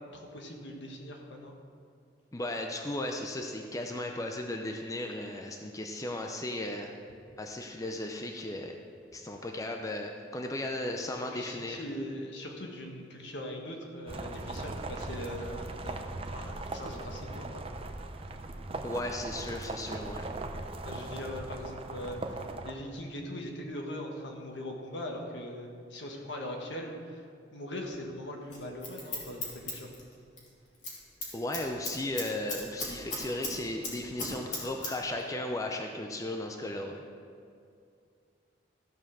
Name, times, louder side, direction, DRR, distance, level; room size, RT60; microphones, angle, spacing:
voice 1, 0.1-1.5 11.3-17.6 20.8-27.2 27.5-29.9, left 1 dB, 70° left, 1 dB, 1.5 m, -41 dB
voice 2, 2.3-6.9 7.4-8.8 9.1-11.8 18.8-20.2 31.3-37.0, left 1 dB, 20° left, 3 dB, 0.6 m, -36 dB
sound 1, 14.1-22.7, right 2 dB, 30° right, 0.6 m, -39 dB
Scissors, 28.5-30.5 30.7-31.0 31.2-33.5 33.8-34.9 35.2-35.3, left 2 dB, 40° left, 2.5 m, -36 dB
14.0 x 5.6 x 6.3 m, 2.4 s
head